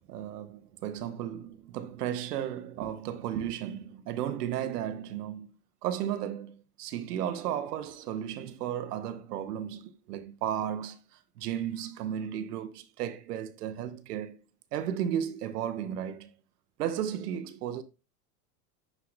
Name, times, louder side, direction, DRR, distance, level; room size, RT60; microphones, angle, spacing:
voice 1, 0.1-5.5 5.8-14.4 14.7-16.3 16.8-17.8, right 10 dB, 90° right, 1.0 m, -34 dB
9.8 x 4.7 x 2.5 m
supercardioid pair, 105°, 45 cm